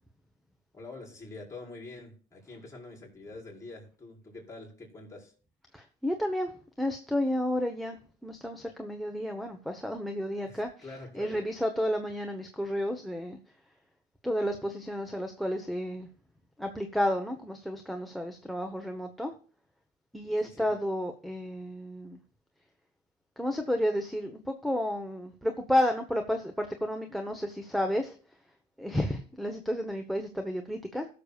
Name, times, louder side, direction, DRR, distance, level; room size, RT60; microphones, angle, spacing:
voice 1, 0.7-5.3 10.5-11.4 20.4-20.7, left 2 dB, 20° left, 4.8 m, -46 dB
voice 2, 5.7-6.5 6.8-10.7 11.2-13.4 14.2-16.1 16.6-19.3 20.1-22.2 23.4-28.1 28.8-31.1, equal, ahead, 1.0 m, -31 dB
20.0 x 6.8 x 2.4 m
cardioid pair, 110°, 17 cm